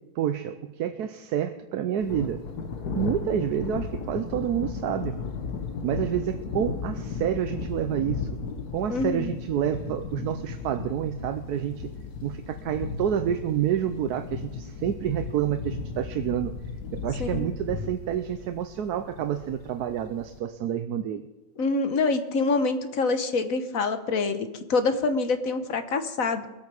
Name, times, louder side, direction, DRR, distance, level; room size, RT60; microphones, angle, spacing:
voice 1, 0.2-2.4 2.9-5.2 5.8-8.4 8.7-11.9 12.2-16.5 17.0-21.2, right 10 dB, 90° right, 8 dB, 1.3 m, -28 dB
Thunder, 2.0-20.4, left 5 dB, 90° left, 1.7 m, -35 dB
voice 2, 8.9-9.3 17.2-17.5 21.6-26.5, left 3 dB, 65° left, 8 dB, 1.5 m, -26 dB
21.5 x 8.7 x 4.9 m, 1.1 s
omnidirectional pair, 1.6 m